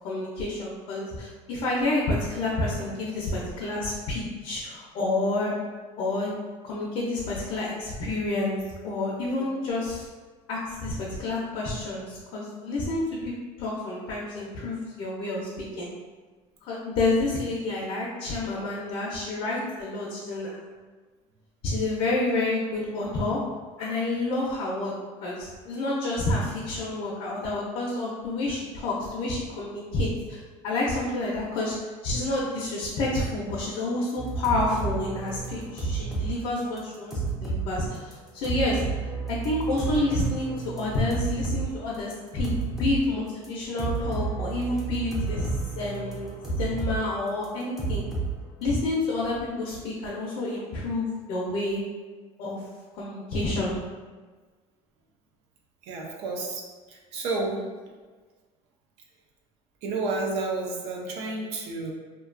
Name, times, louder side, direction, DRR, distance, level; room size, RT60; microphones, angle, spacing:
voice 1, 0.0-5.5 6.0-6.3 6.6-10.1 10.5-13.3 13.6-15.5 15.8-15.9 16.6-20.6 21.6-23.4 23.8-24.9 25.2-38.8 39.3-42.5 42.8-46.3 46.6-48.0 48.6-51.8 52.4-52.6 52.9-53.8, left 2 dB, 55° left, -4 dB, 0.5 m, -29 dB
sound 1, 34.2-36.3 36.6-37.7 37.9-38.1 38.4-41.7 41.9-43.0 43.4-43.5 43.8-47.0 47.3-48.3, right 4 dB, 5° right, 0.4 m, -31 dB
voice 2, 55.8-57.6 59.8-61.9, right 3 dB, 60° right, -1 dB, 0.5 m, -31 dB
2.6 x 2.2 x 2.4 m, 1.4 s
cardioid pair, 160°, 13 cm